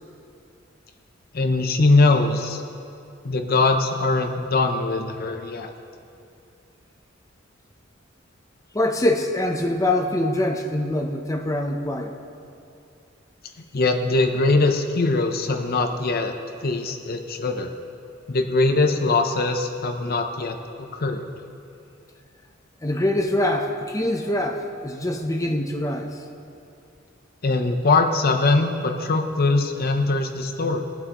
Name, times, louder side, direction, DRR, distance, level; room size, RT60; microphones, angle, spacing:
voice 1, 1.3-2.6 3.2-5.7 13.7-16.3 16.6-17.7 18.3-21.2 27.4-30.8, left 3 dB, 50° left, 5 dB, 0.7 m, -21 dB
voice 2, 8.7-12.1 22.8-26.1, left 1 dB, 15° left, 2 dB, 0.7 m, -24 dB
21.5 x 7.9 x 3.0 m, 2.5 s
head